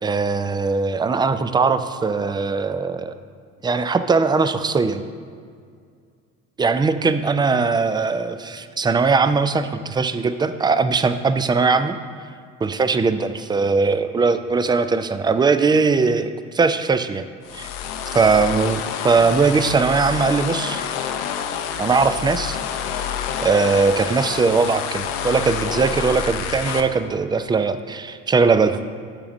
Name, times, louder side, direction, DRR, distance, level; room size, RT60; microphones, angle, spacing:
voice 1, 0.0-3.1 3.6-5.0 6.6-12.0 12.6-17.2 17.5-17.7 18.1-20.8 21.8-22.6 23.4-28.8, right 4 dB, 15° right, 11 dB, 0.3 m, -20 dB
sound 1, 17.4-26.8, left 8 dB, 70° left, 0.7 m, -28 dB
12.5 x 5.9 x 2.6 m, 2.1 s
hypercardioid pair, 55°, 37 cm